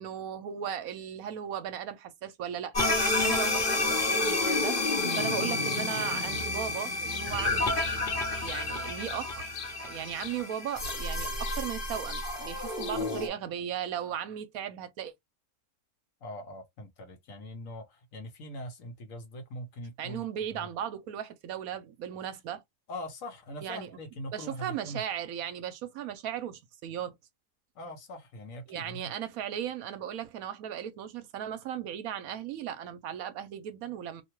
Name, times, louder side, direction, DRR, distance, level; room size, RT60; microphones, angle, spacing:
voice 1, 0.0-7.7 8.4-9.5 9.8-15.1 20.0-22.6 23.6-23.9 24.3-27.2 28.7-34.2, right 9 dB, 75° right, 1.0 m, -37 dB
sound 1, 2.7-13.3, left 2 dB, 40° left, 1.0 m, -30 dB
sound 2, 4.2-4.4 4.8-6.5 7.0-7.5 7.8-11.0 11.4-12.3 12.6-13.2, left 9 dB, 90° left, 1.1 m, -45 dB
voice 2, 12.9-13.4 16.2-20.7 22.9-25.0 27.7-29.1, left 1 dB, 65° left, 1.3 m, -42 dB
2.9 x 2.2 x 3.0 m
omnidirectional pair, 1.6 m